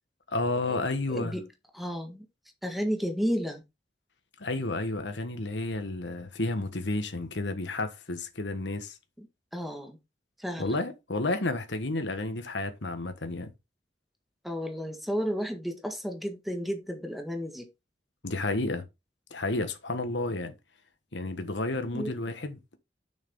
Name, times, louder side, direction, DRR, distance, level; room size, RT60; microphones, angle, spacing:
voice 1, 0.3-1.4 4.4-9.0 10.6-13.5 18.2-18.8 19.3-20.5 21.1-22.8, left 2 dB, 90° left, 1.4 m, -31 dB
voice 2, 1.1-1.4 1.7-2.3 2.6-3.6 9.2-9.3 9.5-10.0 10.4-10.8 14.4-17.7 21.9-22.1, equal, ahead, 1.6 m, -32 dB
7.1 x 6.6 x 3.7 m
head